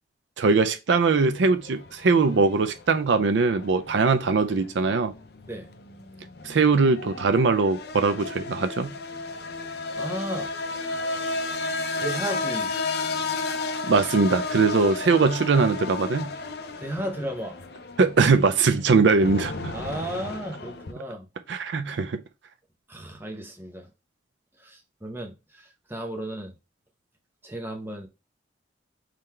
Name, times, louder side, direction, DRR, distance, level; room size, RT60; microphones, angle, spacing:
voice 1, 0.4-5.1 6.4-8.9 13.9-16.3 18.0-19.7 21.5-22.2, right 4 dB, 70° right, 0.4 m, -21 dB
sound 1, 1.1-20.9, left 3 dB, 55° left, 0.5 m, -33 dB
voice 2, 9.9-10.6 12.0-12.7 16.8-17.6 19.7-21.2 22.9-23.9 24.6-26.5 27.4-28.1, right 1 dB, 10° right, 0.8 m, -34 dB
3.8 x 3.3 x 4.3 m
head